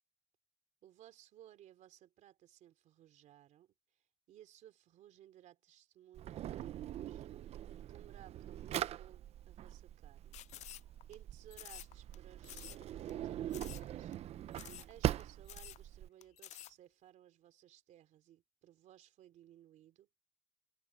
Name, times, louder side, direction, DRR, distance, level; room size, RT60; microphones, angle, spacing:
voice 1, 0.8-3.7 4.3-7.3 7.8-10.4 11.1-12.7 13.1-14.2 14.9-20.2, right 12 dB, 85° right, 3.5 m, -60 dB
Drawer open or close, 6.2-16.1, right 12 dB, 60° right, 0.5 m, -42 dB
sound 1, 10.3-11.2 11.5-12.2 12.4-12.8 13.1-13.2 13.5-13.9 14.1-14.2 14.5-14.9 15.2-15.3 15.5-15.8 16.2-16.7, left 14 dB, 70° left, 0.4 m, -50 dB
cardioid pair, 175°, 12 cm